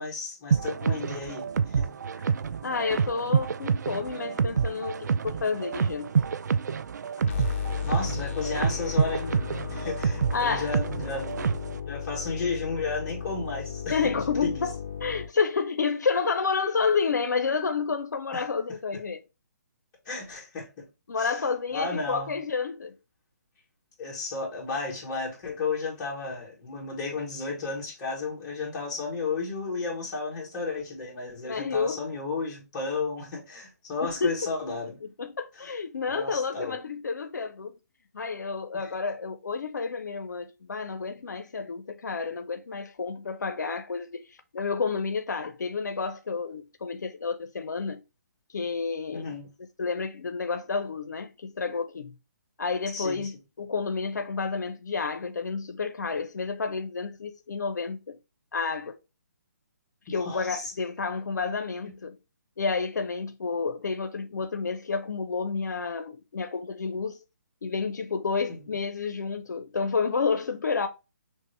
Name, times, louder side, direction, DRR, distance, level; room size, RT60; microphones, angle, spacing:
voice 1, 0.0-2.3 7.5-9.4 9.7-11.4 11.9-14.0 14.4-14.7 18.3-18.4 20.1-20.9 21.2-21.4 21.7-22.3 24.0-35.0 36.1-36.8 38.7-38.9 49.1-49.5 52.9-53.3 60.2-60.7 68.5-68.6, left 4 dB, 25° left, 1.7 m, -33 dB
sound 1, 0.5-11.8, right 6 dB, 75° right, 0.3 m, -28 dB
voice 2, 2.6-6.1 10.3-10.7 13.9-14.7 15.0-19.2 21.1-22.9 31.4-32.0 34.0-34.4 35.0-37.8 38.1-48.0 48.5-49.3 49.8-52.1 52.6-58.2 58.5-59.0 60.1-62.2 62.6-67.2 67.6-70.9, left 5 dB, 85° left, 0.6 m, -30 dB
sound 2, 7.3-15.3, left 7 dB, 45° left, 0.8 m, -35 dB
6.2 x 2.1 x 3.3 m
hypercardioid pair, 155°, 9 cm